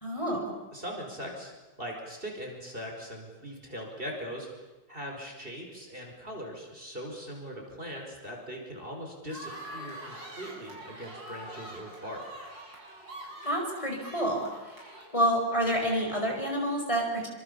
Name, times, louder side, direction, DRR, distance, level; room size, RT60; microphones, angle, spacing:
voice 1, 0.0-0.5 13.4-14.7 15.1-17.3, equal, 15° left, 0 dB, 5.1 m, -28 dB
voice 2, 0.7-4.6 4.9-12.2, equal, 30° right, 1 dB, 5.2 m, -40 dB
sound 1, 9.3-16.2, right 1 dB, 90° right, 7.4 m, -45 dB
27.0 x 26.5 x 7.0 m, 1.1 s
omnidirectional pair, 2.0 m